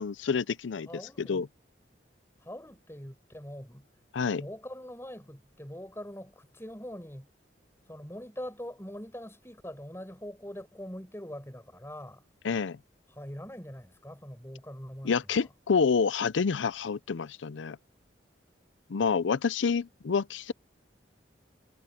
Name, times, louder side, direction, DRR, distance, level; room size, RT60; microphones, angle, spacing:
voice 1, 0.0-0.9 1.2-1.5 4.1-4.4 12.4-12.8 15.0-17.8 18.9-20.5, left 5 dB, 85° left, 0.5 m, -28 dB
voice 2, 0.9-1.4 2.4-3.8 4.4-7.3 7.9-12.2 13.1-15.5, equal, 15° left, 5.3 m, -43 dB
head